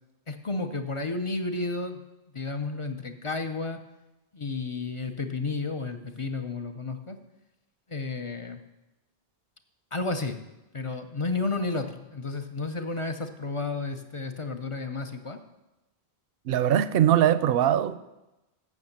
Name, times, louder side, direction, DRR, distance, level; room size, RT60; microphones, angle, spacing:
voice 1, 0.3-2.0 2.3-3.8 4.3-7.2 7.9-8.6 9.9-10.4 10.7-15.4, left 3 dB, 35° left, 0.6 m, -32 dB
voice 2, 16.5-18.0, right 10 dB, 70° right, 0.7 m, -21 dB
8.5 x 7.0 x 6.6 m
omnidirectional pair, 1.1 m